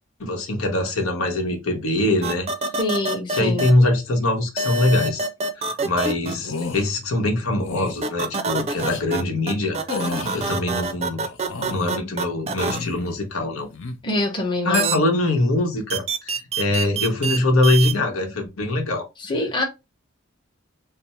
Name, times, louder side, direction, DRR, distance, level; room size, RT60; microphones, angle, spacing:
voice 1, 0.2-2.5 3.3-5.3 5.6-11.3 11.7-13.7 14.6-19.1, left 2 dB, 85° left, 0.9 m, -23 dB
sound 1, 2.2-3.7 4.6-6.4 8.0-9.2 9.5-12.8 14.7-15.0 15.9-17.4 17.6-17.9, right 4 dB, 30° right, 0.4 m, -25 dB
voice 2, 2.8-3.7 14.0-15.0 19.3-19.6, left 1 dB, 25° left, 0.9 m, -25 dB
sound 2, 6.4-6.9 7.6-8.0 8.7-9.0 9.9-10.5 11.2-11.9 12.5-13.2 13.6-14.0, left 3 dB, 65° left, 0.6 m, -31 dB
3.3 x 2.0 x 4.2 m
head